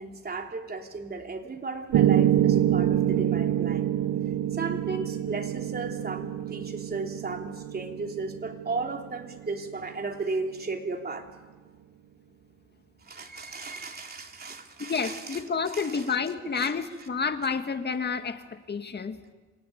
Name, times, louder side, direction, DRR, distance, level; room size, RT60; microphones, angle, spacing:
voice 1, 0.0-3.9 4.5-11.3 13.0-15.4 15.7-16.0 16.6-16.7, right 3 dB, 30° right, 3 dB, 3.3 m, -35 dB
Piano, 1.9-10.0, right 11 dB, 75° right, 1.0 m, -26 dB
voice 2, 14.9-19.2, left 5 dB, 35° left, 8 dB, 2.0 m, -30 dB
27.0 x 17.0 x 8.7 m, 1.3 s
cardioid pair, 90°, 30 cm